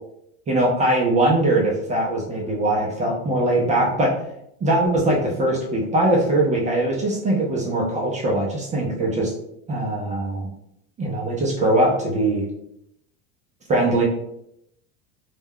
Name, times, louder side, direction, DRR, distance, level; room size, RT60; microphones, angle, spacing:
voice 1, 0.5-4.1 4.6-9.3 9.7-10.5 11.0-12.4 13.7-14.0, right 1 dB, 20° right, -2 dB, 0.4 m, -21 dB
2.2 x 2.2 x 3.4 m, 0.78 s
supercardioid pair, 120°, 35 cm